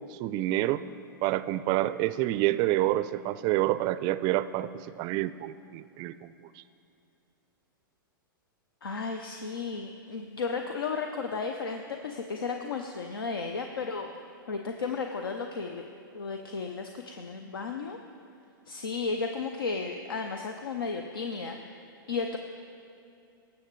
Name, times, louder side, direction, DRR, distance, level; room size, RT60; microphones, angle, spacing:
voice 1, 0.1-0.8 1.2-6.3, right 15 dB, 35° right, 15 dB, 0.4 m, -28 dB
voice 2, 8.8-15.8 16.1-18.0 18.7-21.6 22.1-22.4, left 4 dB, 85° left, 5 dB, 0.6 m, -34 dB
18.0 x 7.1 x 3.1 m, 2.8 s
hypercardioid pair, 115°, 12 cm